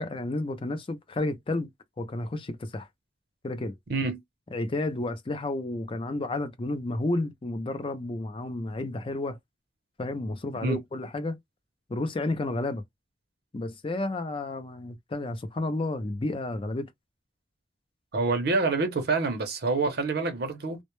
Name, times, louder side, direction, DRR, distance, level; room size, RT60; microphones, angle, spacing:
voice 1, 0.0-1.7 2.0-2.9 3.4-3.7 4.5-9.4 10.0-11.4 11.9-12.8 13.5-16.9, left 2 dB, 30° left, 0.5 m, -31 dB
voice 2, 3.9-4.2 10.6-10.8 18.1-20.8, right 3 dB, 65° right, 0.6 m, -27 dB
2.1 x 2.0 x 3.0 m
head